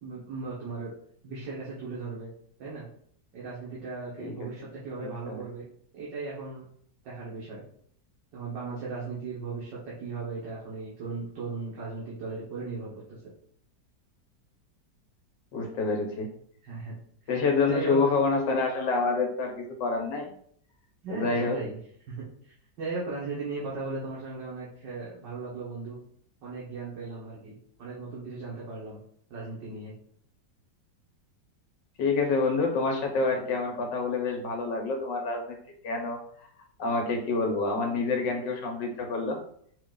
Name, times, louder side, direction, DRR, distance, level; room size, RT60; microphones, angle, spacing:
voice 1, 0.0-0.9 1.2-2.3 2.6-2.9 3.3-5.6 5.9-6.7 7.0-7.6 8.3-12.9 15.6-15.7 16.6-17.0 17.7-18.1 21.0-21.8 22.1-26.0 26.4-29.0 29.3-29.9, right 3 dB, 80° right, -7 dB, 1.9 m, -37 dB
voice 2, 5.0-5.4 15.5-16.3 17.3-20.3 21.1-21.6 32.0-35.6 35.8-36.5 36.8-39.4, left 3 dB, 85° left, 2 dB, 1.6 m, -27 dB
5.6 x 2.5 x 3.8 m, 0.62 s
omnidirectional pair, 1.9 m